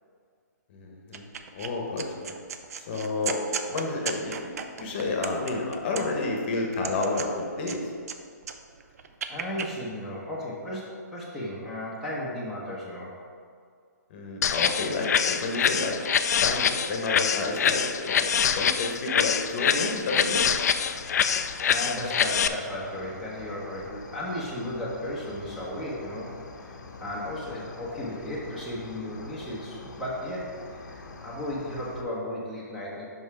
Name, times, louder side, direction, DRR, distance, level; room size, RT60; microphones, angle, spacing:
voice 1, 0.7-1.2 1.5-2.4 2.8-3.4 3.7-7.8 14.1-16.0 16.4-20.5, left 3 dB, 35° left, 1 dB, 1.0 m, -30 dB
sound 1, 1.1-1.7 2.0-6.3 6.7-8.2 8.4-9.7, right 7 dB, 55° right, 0.5 m, -35 dB
voice 2, 9.3-13.2 21.6-33.1, left 1 dB, 5° right, -7 dB, 1.0 m, -35 dB
sound 2, 14.4-22.5, left 7 dB, 60° left, 0.4 m, -25 dB
Cricket, 20.6-32.0, left 3 dB, 75° left, 0.8 m, -45 dB
5.5 x 5.4 x 4.8 m, 2.2 s
hypercardioid pair, 150°, 10 cm